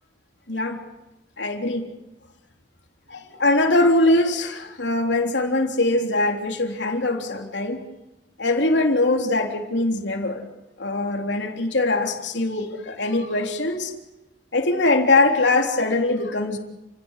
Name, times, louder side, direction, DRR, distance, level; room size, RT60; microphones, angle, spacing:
voice 1, 0.5-0.8 1.4-1.8 3.1-7.8 8.4-10.4 10.8-13.9 14.5-16.6, left 2 dB, 90° left, 3 dB, 3.6 m, -22 dB
30.0 x 17.5 x 10.0 m, 0.97 s
head